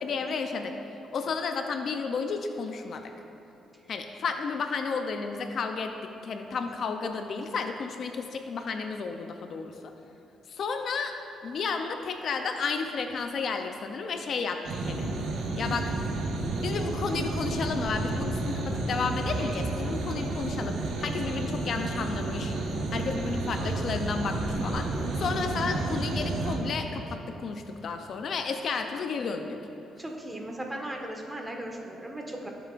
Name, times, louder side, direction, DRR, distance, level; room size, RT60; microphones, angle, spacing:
voice 1, 0.0-0.7 1.1-3.1 3.9-9.9 10.5-11.1 11.4-15.1 15.5-16.0 16.6-22.5 22.9-24.9 25.1-29.6, left 5 dB, 60° left, 5 dB, 0.6 m, -32 dB
sound 1, 14.6-26.6, right 2 dB, 80° right, 1.2 m, -31 dB
voice 2, 30.0-32.5, right 1 dB, 15° right, 1 dB, 1.5 m, -37 dB
17.0 x 7.7 x 2.5 m, 2.9 s
cardioid pair, 90°, 0 cm